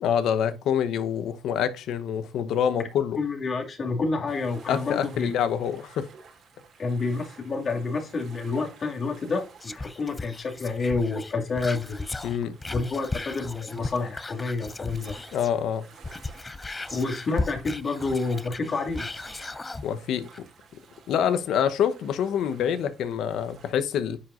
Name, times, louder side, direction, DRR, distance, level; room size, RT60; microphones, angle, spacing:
voice 1, 0.0-3.2 4.7-6.1 12.2-12.6 15.3-15.9 19.8-20.3 21.1-24.2, left 8 dB, 80° left, 0.9 m, -26 dB
voice 2, 3.2-5.3 6.8-12.1 12.7-15.2 16.9-19.1, left 3 dB, 45° left, 2.2 m, -29 dB
sound 1, 4.3-23.7, right 5 dB, 65° right, 2.5 m, -53 dB
Whispering, 9.6-15.6 15.9-19.9 20.3-20.4, left 3 dB, 20° left, 0.5 m, -36 dB
9.9 x 4.9 x 2.5 m
cardioid pair, 90°, 0 cm